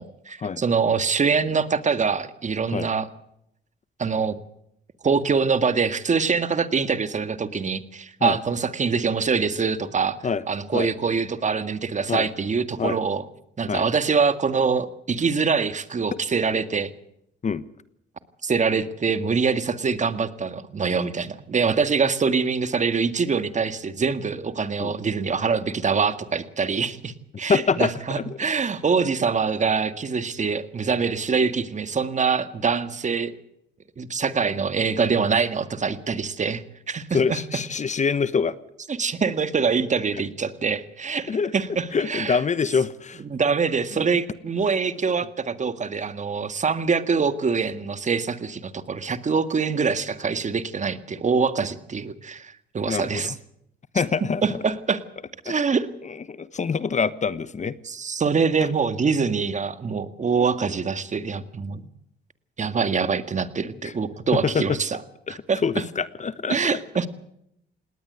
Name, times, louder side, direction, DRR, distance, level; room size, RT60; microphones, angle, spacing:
voice 1, 0.0-3.1 4.0-4.4 5.0-10.2 10.5-13.2 13.6-16.9 18.4-33.3 34.0-37.4 38.9-42.4 43.2-53.3 54.4-55.0 55.4-55.9 57.8-61.8 62.6-65.0 65.3-65.8 66.5-67.1, right 5 dB, 40° right, 11 dB, 1.8 m, -24 dB
voice 2, 27.5-28.4 37.1-38.5 41.3-41.5 41.9-43.2 43.9-44.1 52.9-53.3 53.9-54.6 55.4-55.6 56.3-57.8 63.8-63.9 64.5-64.6 65.3-65.4 65.6-66.8, left 5 dB, 35° left, 16 dB, 1.1 m, -25 dB
19.0 x 18.5 x 8.0 m, 0.75 s
cardioid pair, 90°, 20 cm